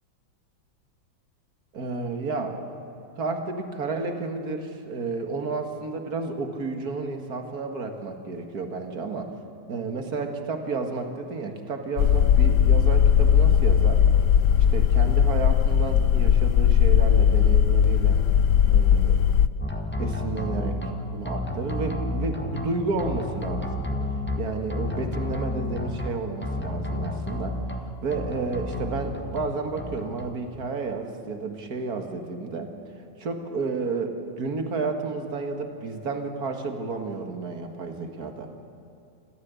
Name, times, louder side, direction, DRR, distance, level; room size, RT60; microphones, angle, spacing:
voice 1, 1.7-2.8 3.2-9.3 9.7-14.0 14.7-18.2 18.7-19.2 20.0-20.8 21.1-23.8 24.4-27.6 28.0-32.7 33.2-38.5, right 4 dB, 50° right, 5 dB, 2.2 m, -31 dB
sound 1, 12.0-19.5, left 8 dB, 85° left, 0.6 m, -18 dB
sound 2, 19.6-20.9 21.2-22.7 23.0-24.4 24.7-26.1 26.4-27.8 28.1-29.4 29.8-30.3, left 1 dB, 5° left, 1.4 m, -31 dB
28.0 x 14.0 x 8.3 m, 2.8 s
omnidirectional pair, 2.1 m